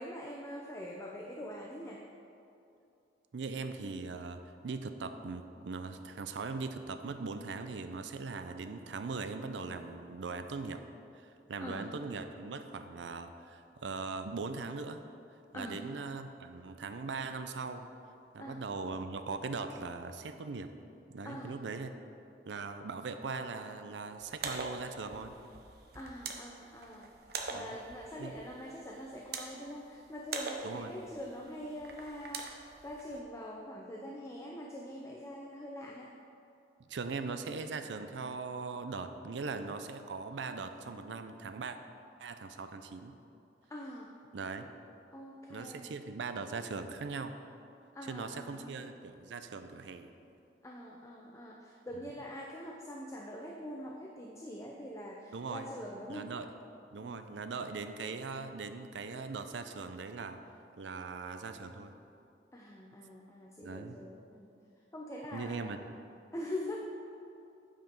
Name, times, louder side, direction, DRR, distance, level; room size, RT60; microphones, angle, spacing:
voice 1, 0.0-2.0 11.6-11.9 15.5-15.8 18.4-18.6 21.2-21.6 25.9-27.1 27.5-36.1 43.7-44.1 45.1-45.9 47.9-48.8 50.6-56.3 57.0-57.2 62.5-64.5 64.9-65.8 66.3-66.8, left 1 dB, 15° left, 0 dB, 0.5 m, -44 dB
voice 2, 3.3-10.8 11.5-15.0 15.5-17.9 18.3-20.7 21.1-21.9 22.5-25.3 27.5-27.8 28.2-28.3 30.6-30.9 36.9-41.8 42.2-43.1 44.3-44.7 45.5-47.4 48.0-50.1 55.3-55.7 56.1-56.5 56.9-60.4 60.8-61.9 63.6-64.0 65.3-65.8, right 4 dB, 85° right, 9 dB, 0.5 m, -40 dB
sound 1, 24.2-33.2, right 4 dB, 60° right, 0.8 m, -44 dB
8.9 x 5.0 x 5.3 m, 2.7 s
head